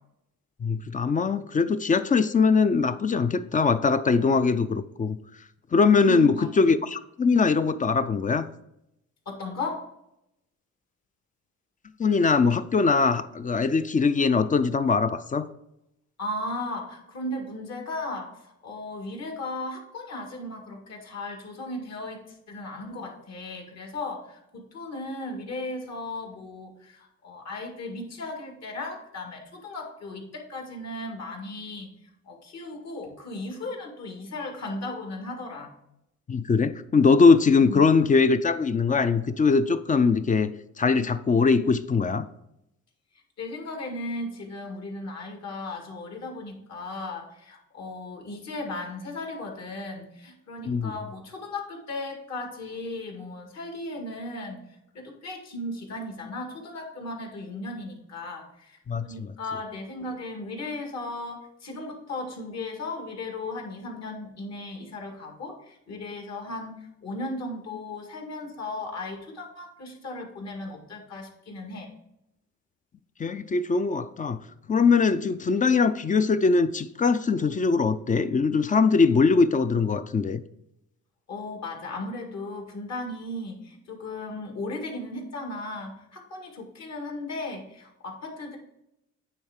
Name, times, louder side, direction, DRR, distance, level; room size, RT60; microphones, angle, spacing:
voice 1, 0.6-5.2 5.7-8.4 12.0-15.5 36.3-42.3 50.7-50.9 58.9-59.3 73.2-74.4 74.7-80.4, left 4 dB, 25° left, 12 dB, 0.4 m, -22 dB
voice 2, 6.0-6.5 9.3-9.9 16.2-31.9 32.2-35.7 37.6-37.8 43.4-54.6 54.9-71.9 81.3-88.6, left 2 dB, 60° left, 2 dB, 2.0 m, -36 dB
8.9 x 3.6 x 4.9 m, 0.83 s
cardioid pair, 90°, 30 cm